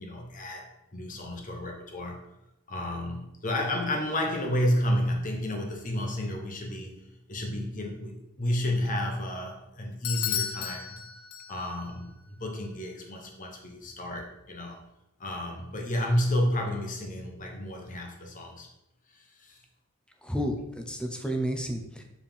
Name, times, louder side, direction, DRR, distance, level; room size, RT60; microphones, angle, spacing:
voice 1, 0.0-2.2 2.7-6.9 7.3-11.0 11.5-14.8 15.2-18.7 19.1-19.6, left 1 dB, 40° left, 1 dB, 1.1 m, -31 dB
Bell / Doorbell, 10.0-11.9, left 9 dB, 75° left, 0.6 m, -33 dB
voice 2, 20.2-22.0, equal, 5° left, 3 dB, 0.7 m, -31 dB
7.1 x 4.3 x 3.6 m, 0.85 s
head